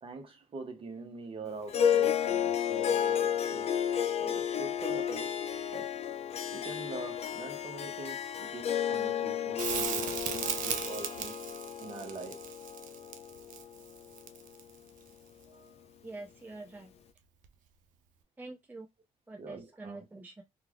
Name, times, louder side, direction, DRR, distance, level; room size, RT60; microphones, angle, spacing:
voice 1, 0.0-3.9 4.2-5.3 5.7-5.9 6.5-11.5 11.8-12.5 15.5-15.9 19.4-20.0, right 3 dB, 40° right, 0.9 m, -44 dB
Harp, 1.7-14.2, left 9 dB, 50° left, 0.5 m, -32 dB
Crackle, 9.6-14.7 17.4-17.5, right 8 dB, 75° right, 0.5 m, -36 dB
voice 2, 16.0-16.9 18.4-18.9 19.3-20.4, right 2 dB, 15° right, 0.5 m, -46 dB
2.4 x 2.3 x 3.3 m
cardioid pair, 100°, 14 cm